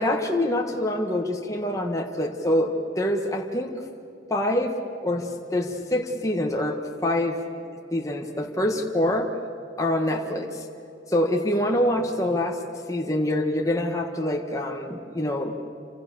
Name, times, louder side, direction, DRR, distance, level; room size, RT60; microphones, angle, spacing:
voice 1, 0.0-3.7 4.3-4.7 5.0-7.4 7.9-9.3 9.8-10.6 11.1-12.6 12.9-15.5, left 1 dB, 15° left, 1 dB, 1.5 m, -25 dB
28.5 x 26.0 x 7.1 m, 2.8 s
head